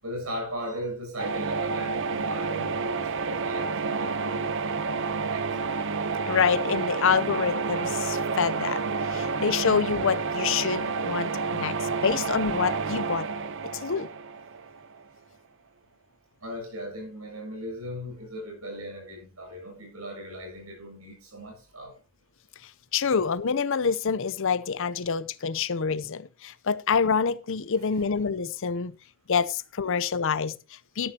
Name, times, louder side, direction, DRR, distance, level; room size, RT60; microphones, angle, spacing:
voice 1, 0.0-4.5 4.9-5.7 16.4-21.9 27.9-28.1, equal, 80° right, 7.2 m, -38 dB
sound 1, 1.2-15.0, right 4 dB, 60° right, 0.8 m, -29 dB
voice 2, 6.3-13.3 13.7-14.1 22.9-28.9 29.3-31.1, left 6 dB, 65° left, 0.6 m, -27 dB
13.0 x 13.0 x 2.9 m
head